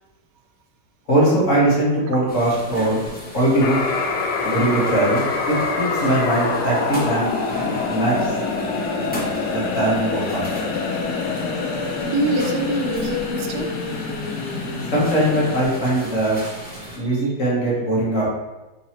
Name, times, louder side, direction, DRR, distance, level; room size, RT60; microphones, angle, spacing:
voice 1, 1.1-3.0 3.3-3.8 4.4-7.3 7.9-8.3 9.5-10.5 14.9-16.4 16.9-18.3, right 1 dB, 55° left, -6 dB, 1.5 m, -20 dB
sound 1, 2.3-17.0, equal, 15° left, 0.4 m, -36 dB
sound 2, 3.6-15.6, left 4 dB, 80° left, 1.2 m, -25 dB
voice 2, 12.0-13.7 17.0-17.3, right 2 dB, 85° right, 4 dB, 1.2 m, -25 dB
3.8 x 2.9 x 4.3 m, 1.1 s
omnidirectional pair, 1.7 m